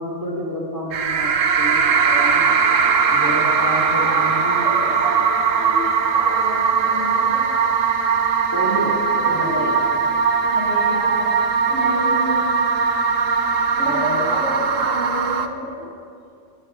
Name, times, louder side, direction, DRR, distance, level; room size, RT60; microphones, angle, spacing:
voice 1, 0.0-2.4 3.1-4.6 8.5-8.9 9.3-9.8 13.8-14.3, equal, 15° right, -2 dB, 3.2 m, -29 dB
sound 1, 0.9-15.5, right 5 dB, 90° right, 1.4 m, -19 dB
voice 2, 3.9-7.5 9.2-9.7 10.4-11.4 11.7-12.5 13.8-15.9, equal, 60° right, -7 dB, 3.7 m, -30 dB
22.5 x 12.5 x 4.8 m, 2.4 s
omnidirectional pair, 1.3 m